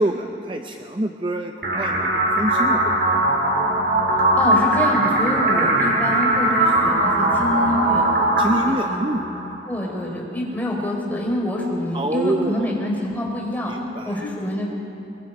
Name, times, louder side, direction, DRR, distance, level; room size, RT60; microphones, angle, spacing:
voice 1, 0.0-3.2 8.4-9.6 11.9-12.7 13.7-14.2, right 1 dB, 30° right, 4 dB, 0.7 m, -26 dB
sound 1, 1.6-9.6, right 1 dB, 65° right, 4.7 m, -20 dB
voice 2, 4.4-8.0 8.8-9.1 9.7-13.7 14.0-14.6, left 1 dB, 10° left, -2 dB, 4.0 m, -26 dB
23.0 x 22.0 x 5.5 m, 2.9 s
head